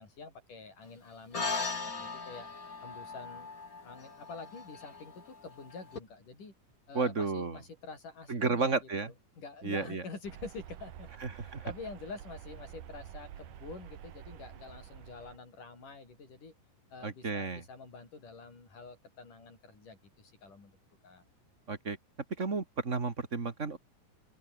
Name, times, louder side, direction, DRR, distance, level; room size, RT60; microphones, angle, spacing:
voice 1, 0.0-2.5 2.8-3.5 3.8-6.5 6.9-16.5 16.9-20.7 21.0-21.2, left 4 dB, 80° left, 8.2 m, -47 dB
sound 1, 1.3-6.0, left 4 dB, 30° left, 2.9 m, -39 dB
voice 2, 6.9-7.6 8.3-9.1 9.6-10.0 11.2-11.6 17.0-17.6 21.7-22.0 22.4-23.8, right 4 dB, 25° right, 2.0 m, -32 dB
sound 2, 10.2-15.4, right 11 dB, 85° right, 3.3 m, -49 dB
open air
omnidirectional pair, 3.6 m